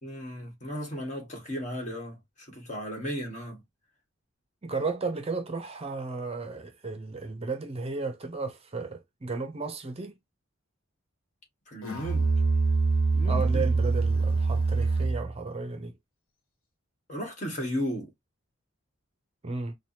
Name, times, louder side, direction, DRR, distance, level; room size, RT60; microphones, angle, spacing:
voice 1, 0.0-3.6 11.7-12.3 13.1-13.6 17.1-18.1, equal, 35° left, 1.5 m, -35 dB
voice 2, 4.6-10.2 13.3-15.9 19.4-19.8, right 3 dB, 30° right, 0.5 m, -34 dB
Musical instrument, 11.8-15.4, right 4 dB, 75° left, 1.2 m, -25 dB
4.6 x 2.2 x 2.7 m
head